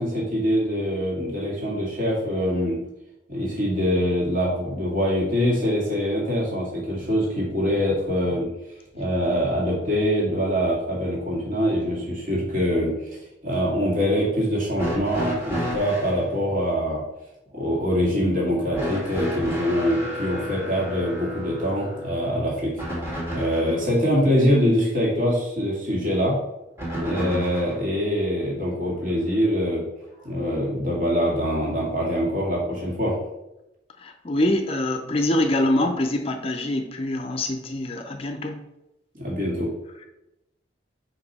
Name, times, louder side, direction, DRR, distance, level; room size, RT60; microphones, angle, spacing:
voice 1, 0.0-2.8 3.3-8.5 8.9-17.0 17.5-22.7 23.3-26.4 26.9-29.8 30.2-33.2 39.1-39.7, equal, 50° right, 2.2 m, -24 dB
sound 1, 14.8-16.2 18.7-23.8 26.8-27.8 29.1-29.2 30.2-30.3, equal, 15° right, 1.6 m, -31 dB
voice 2, 34.0-38.6, left 1 dB, 30° left, 0.5 m, -24 dB
5.3 x 4.8 x 4.2 m
head